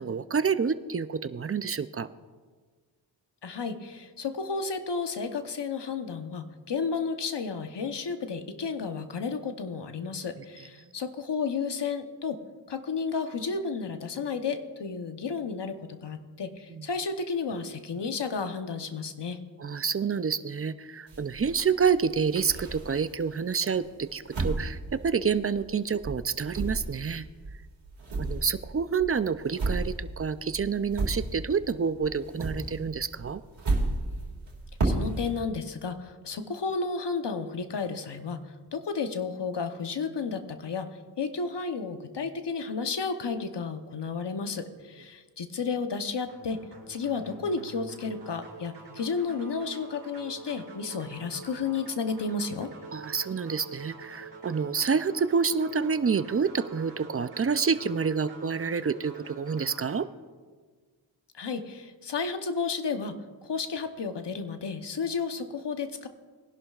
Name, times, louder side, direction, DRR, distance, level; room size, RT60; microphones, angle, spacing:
voice 1, 0.0-2.1 16.7-16.8 19.6-27.3 28.2-33.4 52.9-60.1, right 6 dB, 30° right, 13 dB, 0.5 m, -28 dB
voice 2, 3.4-12.4 12.7-19.4 34.8-38.4 38.7-52.7 61.3-63.2 63.4-66.1, left 5 dB, 65° left, 8 dB, 1.0 m, -32 dB
sound 1, 21.1-23.2 23.7-25.8 26.0-31.7 32.0-35.4, right 2 dB, 85° right, 2.4 m, -33 dB
sound 2, 46.3-60.0, right 4 dB, 65° right, 3.1 m, -46 dB
21.0 x 11.0 x 2.4 m, 1.5 s
cardioid pair, 55°, 45 cm